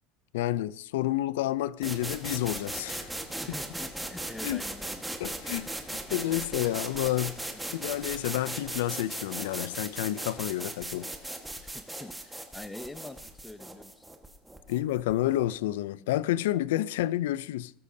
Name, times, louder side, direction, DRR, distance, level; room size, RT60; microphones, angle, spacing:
voice 1, 0.3-3.1 4.4-4.6 5.2-7.5 7.7-11.1 14.7-17.7, left 14 dB, 85° left, 0.4 m, -30 dB
sound 1, 1.8-15.5, right 1 dB, 5° right, 1.4 m, -38 dB
voice 2, 3.4-5.2 11.6-14.0, left 2 dB, 10° left, 0.7 m, -45 dB
19.0 x 13.0 x 2.7 m
supercardioid pair, 115°, 0 cm